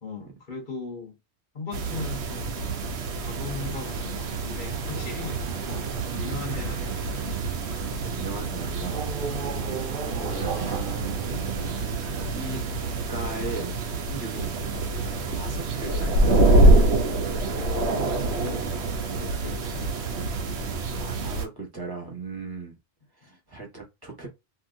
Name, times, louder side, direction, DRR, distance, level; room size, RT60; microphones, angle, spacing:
voice 1, 0.0-1.2 1.5-2.6 3.2-7.0 17.5-18.7 19.0-19.9 23.2-23.4, left 5 dB, 50° left, 1.2 m, -38 dB
sound 1, 1.7-21.5, right 2 dB, 85° right, 1.0 m, -26 dB
sound 2, 4.1-8.1 8.9-12.5, right 4 dB, 55° right, 0.9 m, -39 dB
voice 2, 7.7-9.0 9.9-12.8 13.1-14.6 15.3-16.4 21.0-22.8 23.2-24.3, right 3 dB, 20° right, 1.2 m, -38 dB
2.8 x 2.8 x 2.5 m
omnidirectional pair, 1.1 m